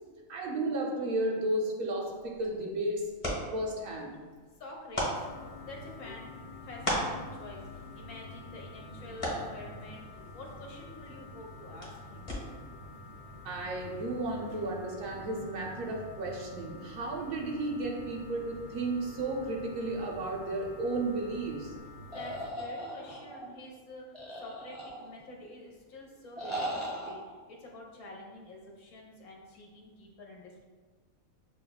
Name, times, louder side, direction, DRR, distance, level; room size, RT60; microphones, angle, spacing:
voice 1, 0.3-3.1 3.5-4.2 13.4-21.7, right 2 dB, 75° right, 0 dB, 0.9 m, -33 dB
sound 1, 2.1-12.8, equal, 30° left, 1.0 m, -40 dB
voice 2, 4.6-5.3 5.6-7.7 7.9-10.1 10.3-12.3 22.1-24.0 24.4-30.6, left 2 dB, 65° left, -1 dB, 1.1 m, -48 dB
sound 2, 5.1-22.5, left 2 dB, 90° left, 1.1 m, -48 dB
sound 3, 22.1-23.5 24.1-25.3 26.4-27.1, right 1 dB, ahead, 0.7 m, -38 dB
6.3 x 2.3 x 2.2 m, 1.4 s
omnidirectional pair, 1.5 m